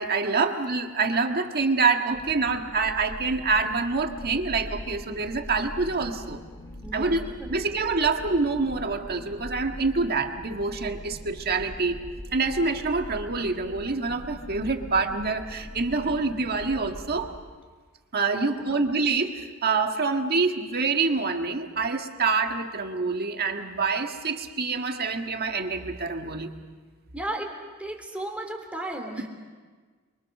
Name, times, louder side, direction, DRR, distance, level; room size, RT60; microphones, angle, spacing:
voice 1, 0.0-6.4 6.9-7.2 7.5-12.0 12.3-17.3 18.1-26.5, right 4 dB, 45° right, 5 dB, 1.7 m, -26 dB
sound 1, 2.1-17.4, left 1 dB, 20° left, 1.7 m, -42 dB
voice 2, 6.8-7.6 18.4-18.8 27.1-27.5 27.8-29.3, right 1 dB, 5° right, 2 dB, 3.5 m, -35 dB
29.0 x 24.0 x 6.6 m, 1.5 s
head